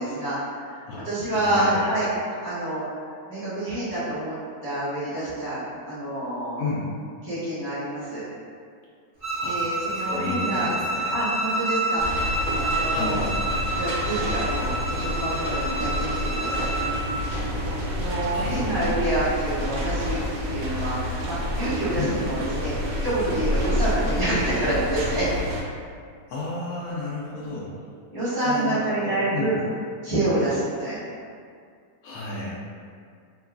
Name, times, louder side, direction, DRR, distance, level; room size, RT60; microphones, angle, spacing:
voice 1, 0.0-2.1 2.4-2.8 3.3-4.3 4.6-6.7 7.2-8.2 9.4-10.7 11.1-13.2 13.8-16.7 17.9-22.7 23.0-25.3 26.9-27.0 28.1-29.7 30.0-31.0, right 1 dB, 20° left, -14 dB, 0.7 m, -27 dB
voice 2, 0.9-1.8 6.6-6.8 9.4-9.6 9.9-11.1 12.9-13.4 18.3-18.7 22.0-22.2 26.3-27.7 28.4-29.5 32.0-32.6, left 3 dB, 70° left, -7 dB, 0.9 m, -31 dB
Bowed string instrument, 9.2-17.0, right 2 dB, 55° right, 0.3 m, -28 dB
sound 1, 12.0-25.6, left 1 dB, 80° right, 0.7 m, -29 dB
3.0 x 2.2 x 2.3 m, 2.2 s
omnidirectional pair, 1.9 m